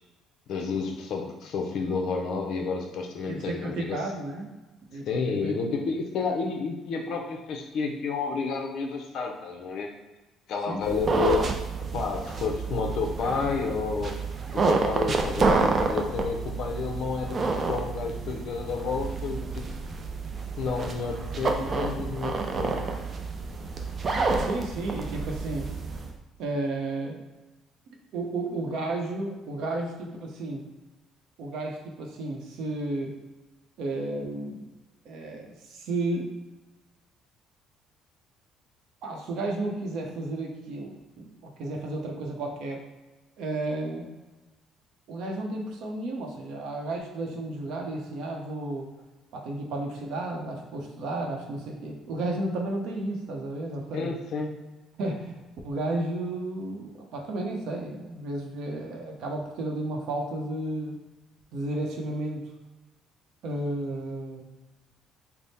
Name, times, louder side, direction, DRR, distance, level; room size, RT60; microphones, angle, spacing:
voice 1, 0.5-4.0 5.1-9.9 10.5-11.6 11.9-14.1 14.5-19.7 20.6-22.9 53.9-54.5, left 4 dB, 55° left, 3 dB, 0.5 m, -30 dB
voice 2, 3.2-4.5 4.9-5.5 10.7-10.8 24.5-25.7 26.4-27.2 28.1-30.6 31.4-33.1 33.8-34.7 35.0-36.3 39.0-42.8 43.4-44.0 45.1-48.9 49.3-54.1 55.0-61.0 61.5-62.5 63.4-64.4, right 2 dB, 65° right, 1 dB, 0.7 m, -33 dB
sound 1, 10.8-26.1, right 4 dB, 30° right, 0.4 m, -29 dB
3.5 x 2.0 x 4.1 m, 1.1 s
cardioid pair, 150°, 0 cm